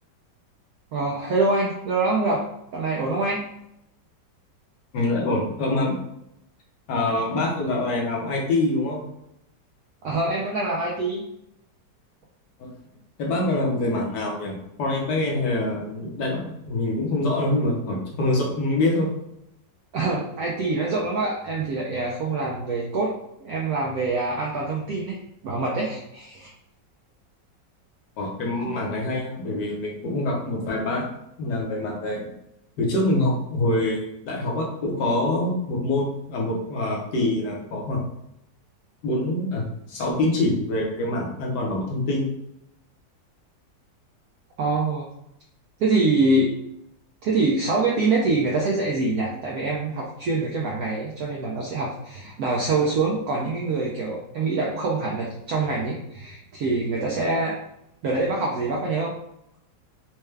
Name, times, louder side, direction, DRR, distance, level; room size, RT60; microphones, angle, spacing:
voice 1, 0.9-2.4 2.7-3.5 10.0-11.3 19.9-23.1 23.4-26.5 44.6-45.1 45.8-46.5 47.2-57.6 58.0-59.2, right 3 dB, 70° right, -2 dB, 0.9 m, -25 dB
voice 2, 4.9-6.0 6.9-9.0 12.6-12.7 13.2-19.1 28.2-31.1 31.4-32.3 32.8-38.0 39.0-42.3, left 2 dB, 70° left, -1 dB, 1.5 m, -25 dB
4.4 x 2.3 x 3.2 m, 0.81 s
omnidirectional pair, 1.9 m